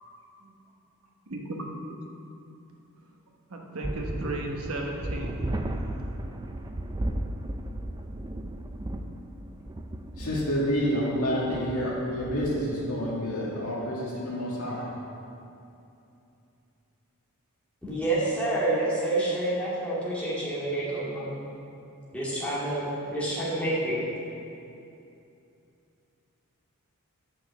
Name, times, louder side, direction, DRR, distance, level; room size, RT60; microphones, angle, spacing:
voice 1, 3.5-5.5, right 2 dB, 70° right, 0 dB, 1.1 m, -34 dB
sound 1, 3.8-12.9, right 1 dB, 20° right, 0.4 m, -35 dB
voice 2, 10.2-14.9, equal, 75° left, -5 dB, 2.1 m, -28 dB
voice 3, 17.8-21.4 22.1-24.0, right 1 dB, 5° left, -9 dB, 2.3 m, -28 dB
7.1 x 5.9 x 7.1 m, 2.7 s
head